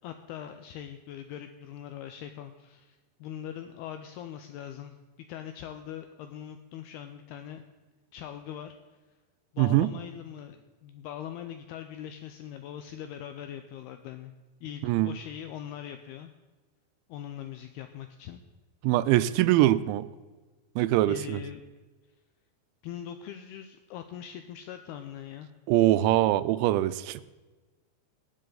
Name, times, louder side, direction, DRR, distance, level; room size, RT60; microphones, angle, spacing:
voice 1, 0.0-5.0 5.3-7.6 8.1-8.8 9.5-14.3 14.6-16.3 17.1-18.4 21.1-21.6 22.8-25.5, left 10 dB, 90° left, 8 dB, 2.3 m, -41 dB
voice 2, 9.6-9.9 14.8-15.1 18.8-20.1 20.8-21.4 25.7-27.2, right 15 dB, 90° right, 15 dB, 2.9 m, -23 dB
18.0 x 7.7 x 3.9 m, 1.2 s
omnidirectional pair, 5.2 m